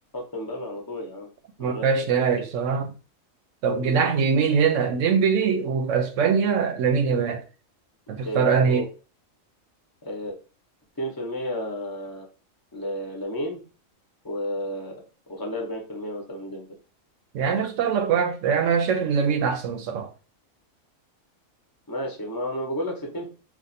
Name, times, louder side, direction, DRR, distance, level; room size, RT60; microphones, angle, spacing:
voice 1, 0.1-1.3 1.6-1.9 2.4-2.5 3.8-4.1 8.3-8.9 10.0-10.4 11.0-12.3 12.7-13.6 14.2-14.9 15.3-16.7 21.9-23.3, equal, 20° left, 0.7 m, -32 dB
voice 2, 1.6-2.9 3.6-7.4 8.1-8.9 17.3-20.1, right 6 dB, 70° right, 0.9 m, -22 dB
2.5 x 2.4 x 4.1 m
omnidirectional pair, 1.4 m